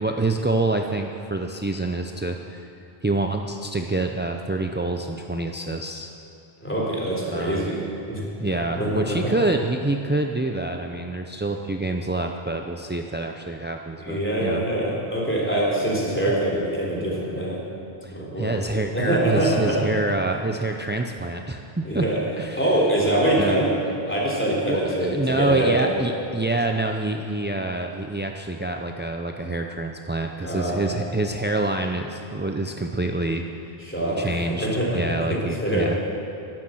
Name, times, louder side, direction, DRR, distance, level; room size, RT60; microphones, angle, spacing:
voice 1, 0.0-2.7 3.0-6.1 7.3-7.7 8.4-14.6 18.0-22.1 22.4-22.7 23.4-23.6 24.6-33.4 34.2-36.0, right 2 dB, 15° right, 3 dB, 0.3 m, -26 dB
voice 2, 6.6-9.3 14.0-17.6 18.1-18.6 18.9-19.8 21.8-22.2 22.6-23.7 24.1-25.9 30.4-30.9 33.8-35.9, right 1 dB, 10° left, -4 dB, 3.4 m, -24 dB
12.0 x 12.0 x 7.7 m, 3.0 s
omnidirectional pair, 1.0 m